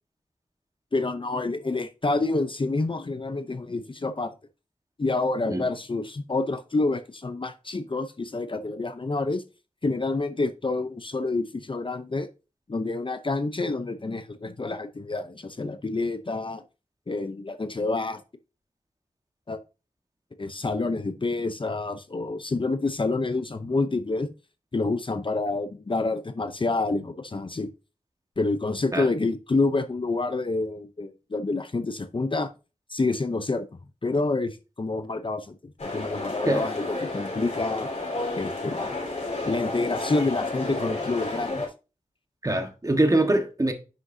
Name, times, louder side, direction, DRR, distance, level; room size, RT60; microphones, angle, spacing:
voice 1, 0.9-4.3 5.0-9.4 9.8-12.3 12.7-16.6 17.1-18.2 19.5-19.6 20.4-24.3 24.7-27.7 28.4-32.5 32.9-33.7 34.0-37.9 38.3-39.0 39.4-41.6, left 3 dB, 40° left, 0.7 m, -28 dB
sound 1, 35.8-41.7, left 2 dB, 60° left, 4.1 m, -31 dB
voice 2, 42.4-43.7, right 1 dB, 25° right, 1.4 m, -23 dB
9.6 x 6.3 x 2.7 m
wide cardioid pair, 85°, 13 cm